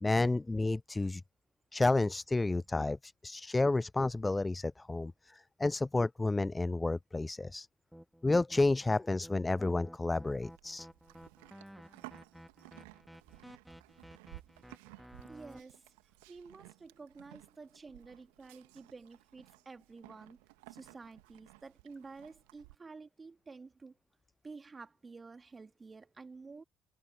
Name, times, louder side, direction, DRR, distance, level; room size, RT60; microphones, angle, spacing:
voice 1, 0.0-1.2 1.7-7.7 8.2-10.9, left 2 dB, 20° left, 0.4 m, -31 dB
sound 1, 7.9-15.6, equal, ahead, 3.1 m, -53 dB
Livestock farm animals working animals, 10.3-22.7, right 29 dB, 70° right, 2.0 m, -57 dB
voice 2, 15.0-15.9 16.3-20.4 20.7-24.0 24.4-26.6, right 4 dB, 30° right, 2.7 m, -51 dB
figure-of-eight pair, 50°, 0 cm